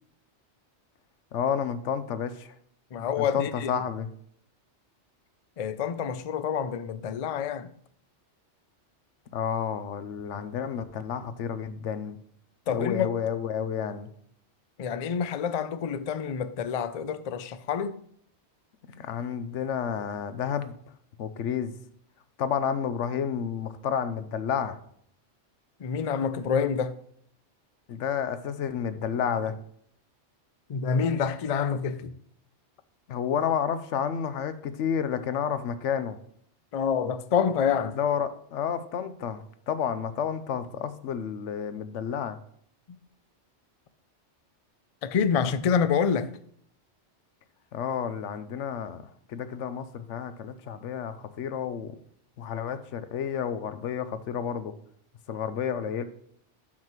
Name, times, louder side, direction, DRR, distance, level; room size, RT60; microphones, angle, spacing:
voice 1, 1.3-2.5 3.2-4.1 9.3-12.2 12.7-14.1 19.0-20.7 21.2-21.7 22.4-24.8 27.9-29.5 33.1-36.2 37.9-42.4 47.7-49.0 49.3-51.9 52.4-54.7 55.3-56.0, left 8 dB, 85° left, 1.0 m, -30 dB
voice 2, 2.9-3.7 5.6-7.7 12.7-13.1 14.8-18.0 25.8-27.0 30.7-32.1 36.7-38.0 45.0-46.3, left 7 dB, 60° left, 0.3 m, -27 dB
12.0 x 5.7 x 3.1 m
omnidirectional pair, 1.2 m